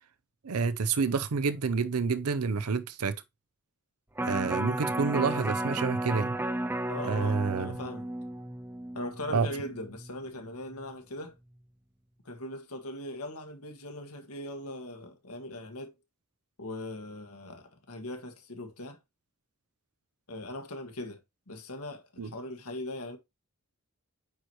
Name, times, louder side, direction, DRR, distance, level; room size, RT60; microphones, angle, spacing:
voice 1, 0.4-3.2 4.2-6.4 7.0-7.7 9.3-9.5 22.2-22.3, right 5 dB, 90° right, 0.6 m, -28 dB
Electric guitar, 4.2-10.4 10.8-10.9, right 1 dB, 10° right, 0.6 m, -33 dB
voice 2, 6.9-8.1 8.9-11.4 12.2-15.9 16.6-19.0 20.3-21.2 21.5-23.2, left 1 dB, 85° left, 1.9 m, -40 dB
8.8 x 4.8 x 2.9 m
head